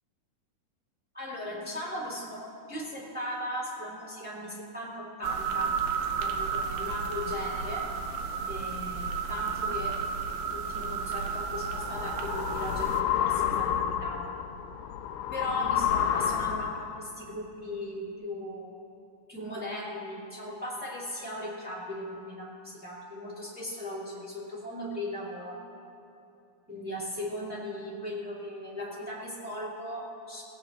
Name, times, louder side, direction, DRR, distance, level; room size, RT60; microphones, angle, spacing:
voice 1, 1.1-5.8 6.2-7.9 8.4-10.0 10.5-14.4 15.3-18.8 19.3-25.6 26.7-30.4, left 1 dB, 10° right, -7 dB, 0.4 m, -38 dB
sound 1, 5.2-13.0, right 6 dB, 75° right, 2.1 m, -32 dB
sound 2, 11.3-17.0, left 9 dB, 85° left, 2.4 m, -30 dB
22.0 x 17.0 x 2.9 m, 2.7 s
omnidirectional pair, 5.0 m